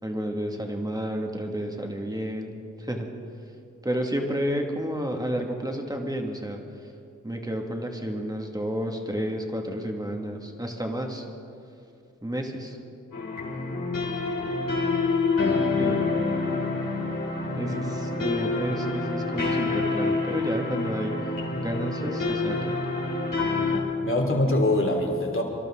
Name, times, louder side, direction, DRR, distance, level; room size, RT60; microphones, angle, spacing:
voice 1, 0.0-3.1 3.8-6.6 7.2-11.2 12.2-12.8 15.8-16.0 17.6-21.1 21.6-22.8, equal, 10° right, 2 dB, 2.3 m, -31 dB
sound 1, 13.1-23.8, left 3 dB, 85° left, 4.0 m, -27 dB
voice 2, 24.0-25.4, left 1 dB, 40° left, 0 dB, 3.1 m, -24 dB
25.0 x 12.0 x 3.9 m, 2.5 s
cardioid pair, 45°, 32 cm